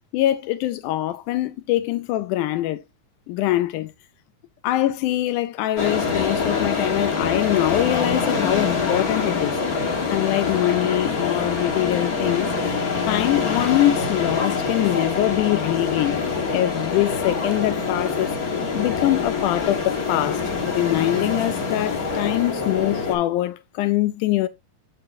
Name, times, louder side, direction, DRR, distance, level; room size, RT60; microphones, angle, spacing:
voice 1, 0.1-2.8 3.3-3.9 4.6-9.6 10.1-12.5 13.1-16.3 16.5-18.3 18.7-24.5, left 15 dB, 80° left, 1.8 m, -23 dB
sound 1, 5.8-23.1, left 5 dB, 60° left, 0.9 m, -25 dB
7.7 x 6.8 x 2.6 m
omnidirectional pair, 4.0 m